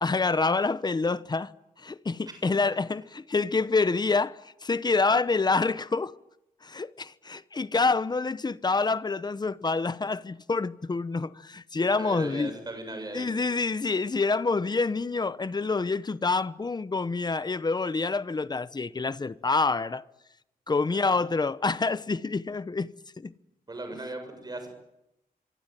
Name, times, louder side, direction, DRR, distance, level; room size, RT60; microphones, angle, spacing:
voice 1, 0.0-1.5 1.8-6.1 6.6-12.5 13.1-20.0 20.7-23.3, left 4 dB, 25° left, 0.9 m, -27 dB
voice 2, 2.3-2.8 11.8-13.4 20.9-21.2 23.7-24.7, right 2 dB, 25° right, 7.4 m, -38 dB
25.5 x 24.5 x 9.2 m
wide cardioid pair, 170°, 16 cm